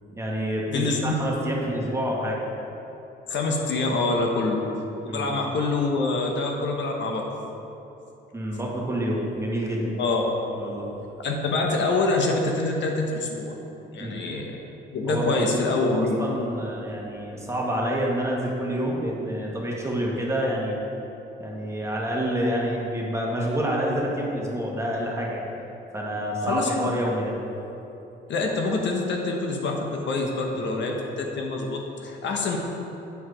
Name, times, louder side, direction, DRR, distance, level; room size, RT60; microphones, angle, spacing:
voice 1, 0.1-2.4 5.1-5.3 8.3-9.9 10.5-10.9 14.0-14.2 15.1-20.8 21.4-25.5 25.9-27.3 30.5-30.7, equal, 15° right, -3 dB, 1.5 m, -28 dB
voice 2, 0.7-1.1 3.3-4.6 5.0-7.3 10.0-10.2 11.2-13.5 13.9-14.5 14.9-16.2 26.4-26.9 28.3-32.6, left 3 dB, 65° left, 1 dB, 1.0 m, -25 dB
8.2 x 4.7 x 5.0 m, 2.9 s
cardioid pair, 90°, 20 cm